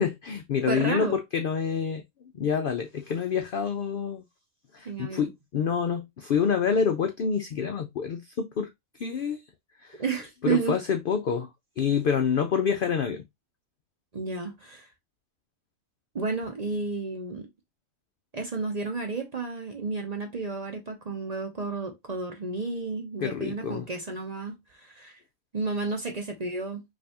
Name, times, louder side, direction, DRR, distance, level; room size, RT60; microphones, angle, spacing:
voice 1, 0.0-2.0 2.3-4.2 4.7-8.7 8.9-9.4 9.8-10.0 10.4-11.5 11.8-13.2 23.2-23.9, left 6 dB, 65° left, 0.5 m, -27 dB
voice 2, 0.7-1.2 4.8-5.3 10.0-10.8 14.1-14.9 16.1-17.5 18.3-25.2 25.5-26.8, right 4 dB, 40° right, 0.7 m, -32 dB
5.3 x 2.7 x 2.8 m
omnidirectional pair, 1.4 m